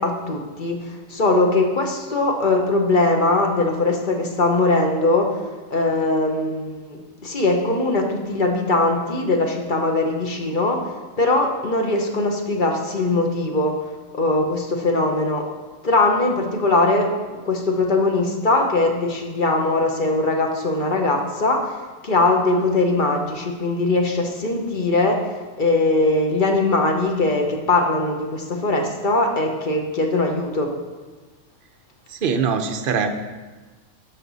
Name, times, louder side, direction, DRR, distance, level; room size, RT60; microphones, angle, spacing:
voice 1, 0.0-5.4 5.7-10.8 11.2-13.8 14.1-15.5 15.8-17.1 17.4-21.8 22.0-25.2 25.6-30.7, left 2 dB, 40° left, 2 dB, 1.0 m, -21 dB
voice 2, 32.1-33.1, right 6 dB, 50° right, 7 dB, 0.7 m, -22 dB
11.0 x 6.0 x 4.0 m, 1.3 s
omnidirectional pair, 1.5 m